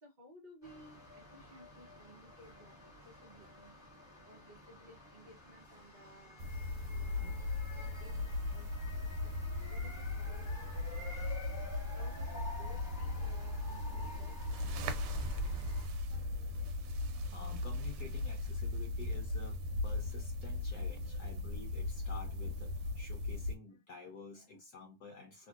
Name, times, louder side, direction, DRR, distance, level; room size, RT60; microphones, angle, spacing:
voice 1, 0.0-3.7 4.2-6.4 6.9-7.5 7.9-8.7 9.2-9.3 9.6-10.6 10.9-11.2 11.9-14.3, equal, 40° right, 0.6 m, -58 dB
sound 1, 0.6-15.9, equal, ahead, 1.2 m, -48 dB
sound 2, 6.4-23.6, left 2 dB, 85° right, 1.6 m, -38 dB
voice 2, 16.1-25.5, left 3 dB, 65° left, 1.0 m, -51 dB
3.3 x 2.7 x 2.3 m
omnidirectional pair, 2.4 m